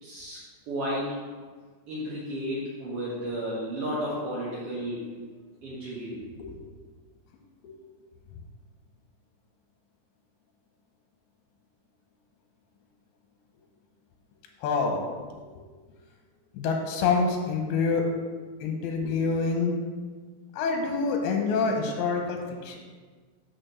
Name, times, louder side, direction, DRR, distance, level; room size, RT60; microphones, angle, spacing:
voice 1, 0.0-0.4 0.7-1.2 1.9-5.1 5.6-6.2, equal, 60° right, -8 dB, 1.6 m, -33 dB
voice 2, 14.6-15.6 16.5-18.1 18.6-19.8 20.5-22.8, left 4 dB, 80° left, 2 dB, 2.6 m, -27 dB
6.1 x 4.5 x 6.6 m, 1.5 s
omnidirectional pair, 4.7 m